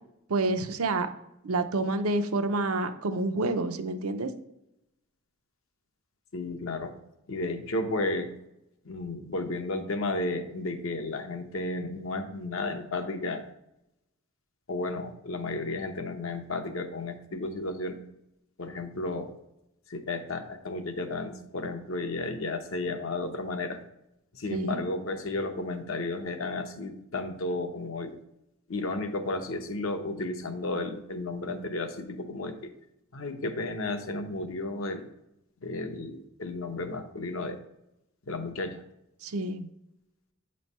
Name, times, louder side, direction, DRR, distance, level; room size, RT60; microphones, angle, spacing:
voice 1, 0.3-1.1 1.4-4.3 24.5-24.8 39.2-39.7, right 2 dB, 80° right, 7 dB, 0.6 m, -28 dB
voice 2, 6.3-6.9 7.3-8.3 8.8-13.4 14.7-18.0 18.6-19.3 19.9-23.8 24.3-28.2 28.7-32.5 33.1-35.1 35.6-37.6 38.3-38.8, left 2 dB, 65° left, 6 dB, 0.8 m, -33 dB
8.0 x 3.2 x 5.4 m, 0.85 s
head